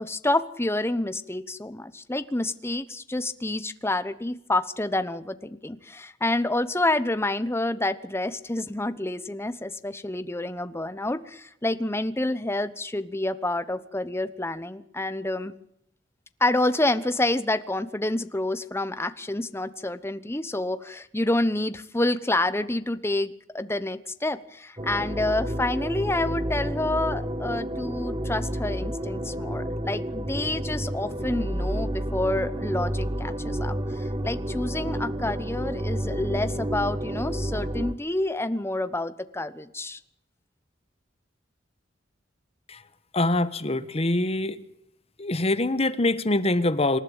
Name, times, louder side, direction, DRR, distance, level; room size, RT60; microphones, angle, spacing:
voice 1, 0.0-15.5 16.4-40.0, left 2 dB, 15° left, 13 dB, 1.0 m, -28 dB
sound 1, 24.8-37.9, right 1 dB, 25° right, 1.3 m, -30 dB
voice 2, 43.1-44.6 45.2-47.0, left 2 dB, 35° left, 13 dB, 1.2 m, -24 dB
26.5 x 12.0 x 8.8 m, 0.77 s
head